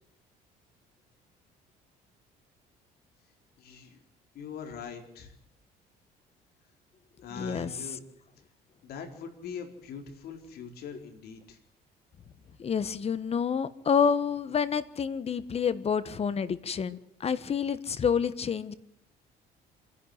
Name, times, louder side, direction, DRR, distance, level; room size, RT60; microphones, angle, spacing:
voice 1, 3.6-4.0 4.3-5.3 7.2-8.0 8.8-11.6, left 6 dB, 70° left, 5 dB, 4.3 m, -42 dB
voice 2, 7.4-7.7 12.6-18.7, left 7 dB, 35° left, 15 dB, 1.4 m, -28 dB
27.5 x 11.0 x 9.7 m, 0.74 s
cardioid pair, 110°, 17 cm